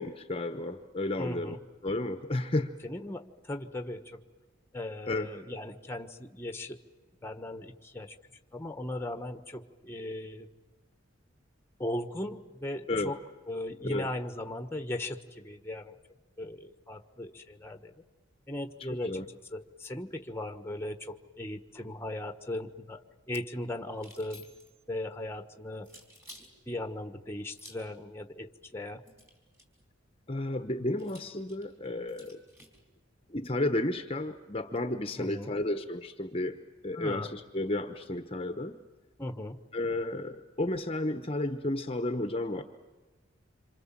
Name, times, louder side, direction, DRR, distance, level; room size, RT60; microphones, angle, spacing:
voice 1, 0.0-1.6 1.8-2.7 5.1-5.3 12.9-13.1 13.8-14.1 18.9-19.2 30.3-32.4 33.3-36.6 36.8-38.8 39.7-42.6, left 1 dB, 30° left, 8 dB, 1.1 m, -32 dB
voice 2, 1.2-1.6 2.8-4.2 4.7-6.8 7.2-8.1 8.5-10.5 11.8-13.2 13.5-16.0 16.4-17.9 18.5-19.2 19.5-24.5 24.9-25.9 26.7-29.0 35.2-35.5 36.9-37.3 39.2-39.6, left 1 dB, 10° left, 7 dB, 1.4 m, -38 dB
sound 1, 23.9-24.8 25.8-26.5 27.5-28.0 29.0-29.8 31.0-32.8, equal, 15° right, 4.5 m, -53 dB
27.0 x 26.5 x 7.5 m, 1.2 s
head